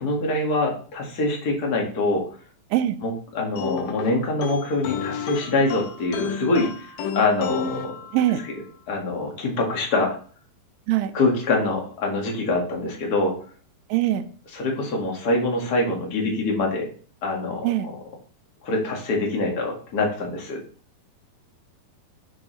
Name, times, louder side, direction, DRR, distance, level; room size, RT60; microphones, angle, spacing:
voice 1, 0.0-2.2 3.0-7.9 8.9-10.1 11.1-13.3 14.5-16.9 17.2-17.7 18.6-20.6, left 2 dB, 45° left, 0 dB, 1.2 m, -24 dB
sound 1, 3.6-8.6, left 7 dB, 80° left, 2.0 m, -32 dB
voice 2, 13.9-14.2 17.6-17.9, right 13 dB, 85° right, 7 dB, 2.0 m, -22 dB
6.7 x 6.3 x 3.1 m, 0.42 s
omnidirectional pair, 4.5 m